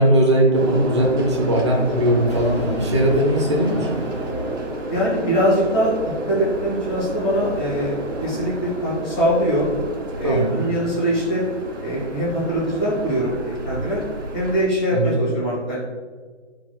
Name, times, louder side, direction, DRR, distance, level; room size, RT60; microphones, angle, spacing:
voice 1, 0.0-4.0 10.2-10.6 14.9-15.2, right 1 dB, 25° right, -2 dB, 0.7 m, -19 dB
sound 1, 0.6-14.7, right 1 dB, 90° right, 1.9 m, -31 dB
Brass instrument, 2.3-5.4, right 1 dB, 25° left, 0.6 m, -34 dB
voice 2, 4.9-5.9 6.3-9.7 10.2-11.4 11.8-14.0 14.3-15.8, equal, 5° left, -11 dB, 1.0 m, -22 dB
12.0 x 4.7 x 2.3 m, 1.5 s
hypercardioid pair, 175°, 36 cm